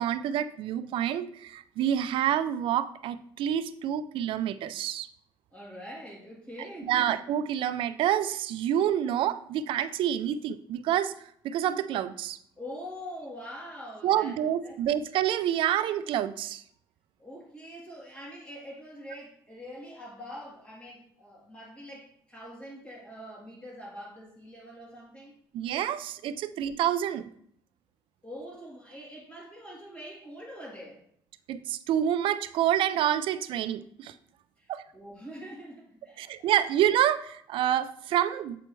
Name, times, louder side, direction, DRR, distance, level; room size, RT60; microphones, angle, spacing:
voice 1, 0.0-5.1 6.9-11.1 11.4-12.4 14.0-16.6 25.5-27.3 31.5-34.1 34.7-34.8 36.2-38.6, right 10 dB, 75° right, 13 dB, 0.4 m, -28 dB
voice 2, 5.5-7.2 12.6-14.3 14.6-14.8 17.2-25.4 28.2-31.0 34.6-36.5, equal, 15° left, -5 dB, 2.9 m, -44 dB
7.7 x 4.4 x 3.1 m, 0.64 s
cardioid pair, 95°, 9 cm